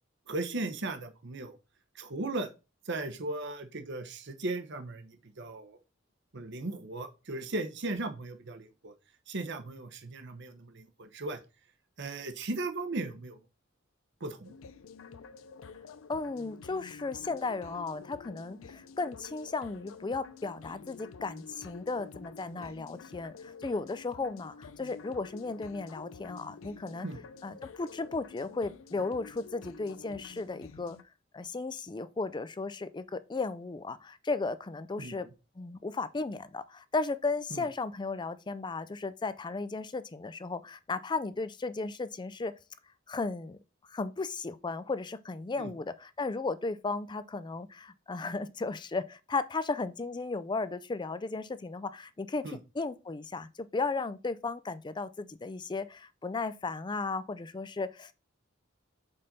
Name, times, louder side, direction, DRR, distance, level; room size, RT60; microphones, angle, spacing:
voice 1, 0.3-1.6 1.9-2.5 2.9-5.8 6.3-8.9 9.3-11.4 12.0-13.4 14.2-14.5 27.0-27.2 35.0-35.1 37.5-37.6 45.6-45.7 52.4-52.6, right 2 dB, 60° right, 1.0 m, -37 dB
sound 1, 14.4-31.0, left 5 dB, 85° left, 0.5 m, -49 dB
voice 2, 16.1-27.1 27.4-31.0 31.3-35.3 35.6-42.5 43.1-43.6 43.9-58.1, left 3 dB, 20° left, 0.4 m, -35 dB
5.4 x 4.2 x 5.2 m
head